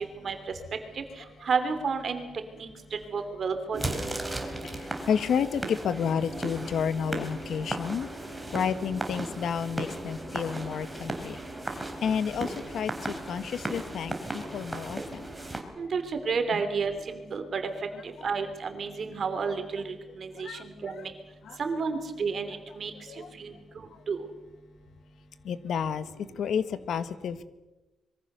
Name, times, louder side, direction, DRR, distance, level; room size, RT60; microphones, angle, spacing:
voice 1, 1.5-2.3 2.5-2.7 3.1-4.1 15.8-17.6 18.0-19.8 20.2-21.1 21.6-22.9 23.4-23.5 24.1-24.2, right 5 dB, 40° right, 8 dB, 3.1 m, -31 dB
sound 1, 3.7-15.6, right 1 dB, 5° right, 3.5 m, -36 dB
voice 2, 4.6-8.1 8.5-11.4 12.0-15.3 16.5-16.6 20.3-20.6 21.5-21.6 23.1-23.3 25.4-26.1 26.4-27.4, left 7 dB, 60° left, 13 dB, 1.5 m, -31 dB
25.5 x 23.0 x 6.8 m, 1.1 s
wide cardioid pair, 160°, 0 cm